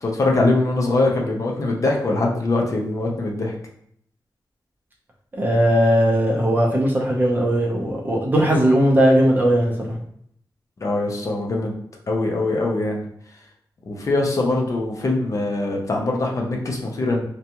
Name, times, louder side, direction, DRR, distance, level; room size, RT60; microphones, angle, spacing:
voice 1, 0.0-3.5 10.8-11.7 12.1-13.0 13.9-17.2, left 2 dB, 40° left, 0 dB, 0.5 m, -22 dB
voice 2, 5.3-10.0, equal, 25° right, -2 dB, 0.6 m, -18 dB
2.6 x 2.2 x 2.8 m, 0.69 s
wide cardioid pair, 180°, 8 cm